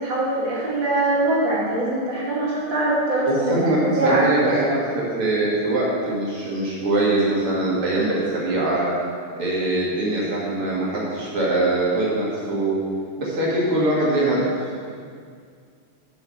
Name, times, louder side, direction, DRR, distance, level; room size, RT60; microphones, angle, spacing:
voice 1, 0.0-4.2, right 2 dB, 60° right, -7 dB, 2.8 m, -23 dB
voice 2, 3.3-8.9 9.4-12.8 13.2-14.4, right 2 dB, 80° right, -6 dB, 3.1 m, -22 dB
7.8 x 6.5 x 5.9 m, 2.1 s
omnidirectional pair, 2.4 m